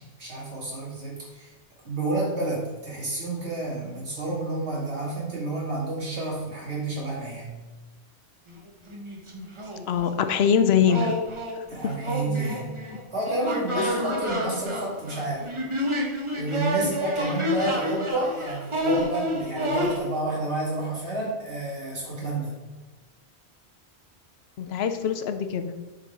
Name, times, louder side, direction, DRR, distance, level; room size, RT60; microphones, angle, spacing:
voice 1, 0.0-1.5 1.8-7.5 11.7-12.7 13.1-15.5 16.3-22.5, right 2 dB, 90° right, -5 dB, 2.5 m, -30 dB
sound 1, 8.5-8.6 8.9-10.2 10.9-20.0, equal, 30° right, 1.0 m, -29 dB
voice 2, 9.9-11.2 11.6-11.7 13.8-14.0 24.6-25.7, left 7 dB, 70° left, 9 dB, 0.8 m, -23 dB
7.2 x 4.0 x 4.5 m, 1.2 s
omnidirectional pair, 1.1 m